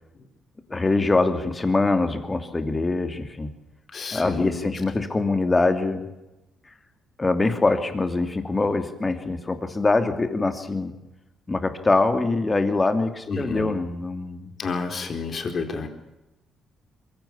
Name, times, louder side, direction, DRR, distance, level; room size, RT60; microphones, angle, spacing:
voice 1, 0.7-3.5 4.1-6.1 7.2-10.9 11.5-14.5, left 3 dB, 20° left, 8 dB, 2.8 m, -23 dB
voice 2, 3.9-4.7 13.3-13.7 14.6-15.9, left 4 dB, 45° left, 6 dB, 4.2 m, -30 dB
22.5 x 16.0 x 8.6 m, 0.98 s
cardioid pair, 90°, 0 cm